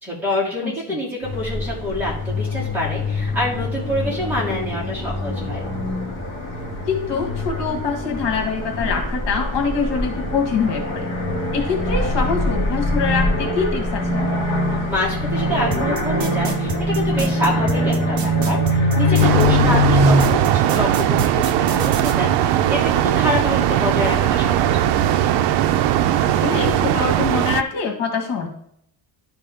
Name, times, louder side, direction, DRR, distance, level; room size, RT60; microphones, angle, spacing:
voice 1, 0.0-5.6 14.9-25.1, left 1 dB, 5° right, -7 dB, 2.6 m, -26 dB
sound 1, 1.2-20.2, left 1 dB, 35° left, 2.1 m, -23 dB
voice 2, 6.9-11.1 11.5-14.3 19.6-19.8 26.2-28.5, left 5 dB, 70° left, 2 dB, 1.8 m, -24 dB
sound 2, 15.7-19.5 20.2-22.1, right 3 dB, 40° right, 1.0 m, -28 dB
sound 3, 19.2-27.6, right 11 dB, 75° right, 0.6 m, -19 dB
11.0 x 4.6 x 3.5 m, 0.71 s
cardioid pair, 175°, 43 cm